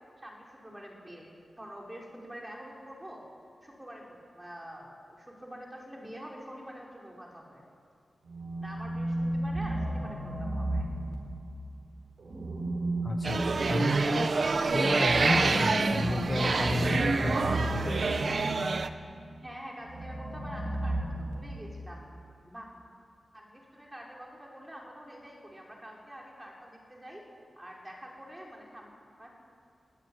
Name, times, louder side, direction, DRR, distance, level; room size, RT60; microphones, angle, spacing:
voice 1, 0.2-3.2 3.6-7.6 8.6-10.9 19.4-22.1 22.5-22.7 23.3-27.2 27.6-28.9 29.2-29.3, equal, 15° right, -2 dB, 5.3 m, -46 dB
sound 1, 8.3-11.6 12.2-18.9 19.8-21.8, right 1 dB, 70° right, 4.2 m, -34 dB
voice 2, 13.0-18.0, left 2 dB, 25° left, 6 dB, 0.9 m, -32 dB
sound 2, 13.2-18.9, right 4 dB, 55° right, 1.1 m, -27 dB
22.0 x 17.5 x 9.7 m, 2.3 s
wide cardioid pair, 130°, 0 cm